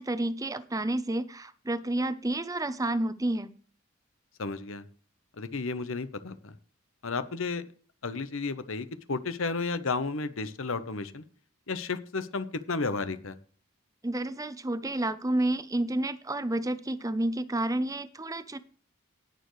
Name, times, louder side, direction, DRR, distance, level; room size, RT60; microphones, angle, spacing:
voice 1, 0.0-3.5 14.0-18.6, right 1 dB, 15° right, 13 dB, 0.7 m, -30 dB
voice 2, 4.4-4.8 5.4-6.5 7.0-7.6 8.0-11.2 11.7-13.4, left 4 dB, 70° left, 12 dB, 1.0 m, -32 dB
18.5 x 6.8 x 3.2 m, 0.42 s
head